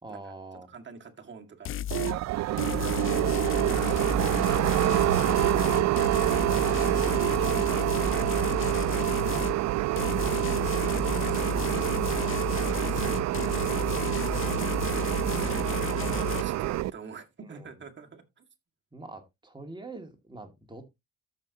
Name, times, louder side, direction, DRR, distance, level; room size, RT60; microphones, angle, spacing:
voice 1, 0.0-0.7 2.5-2.9 17.4-17.7 18.9-20.9, right 2 dB, 15° right, 2.2 m, -45 dB
voice 2, 0.7-2.2 2.6-3.3 3.7-4.1 6.5-7.7 8.1-9.6 9.9-12.5 12.9-13.8 14.5-15.8 16.1-18.4, right 5 dB, 40° right, 2.0 m, -45 dB
sound 1, 1.6-2.2 2.6-9.6 10.0-16.4, left 11 dB, 45° left, 0.4 m, -33 dB
sound 2, 1.9-16.9, right 15 dB, 60° right, 0.4 m, -27 dB
13.5 x 5.8 x 2.8 m
cardioid pair, 90°, 30 cm